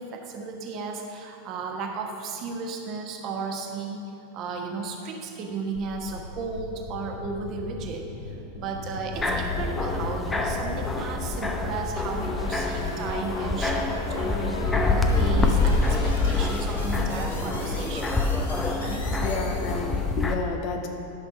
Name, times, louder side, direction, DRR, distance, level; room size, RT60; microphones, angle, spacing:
voice 1, 0.0-4.0 4.3-18.2 18.8-19.2, right 4 dB, 35° right, 2 dB, 1.2 m, -34 dB
sound 1, 5.7-20.1, left 2 dB, 70° left, 1.4 m, -39 dB
sound 2, 9.1-20.4, left 3 dB, 15° left, 0.7 m, -26 dB
voice 2, 19.2-20.9, left 4 dB, 40° left, 4 dB, 0.9 m, -30 dB
10.5 x 6.0 x 5.9 m, 2.7 s
figure-of-eight pair, 90°, 0 cm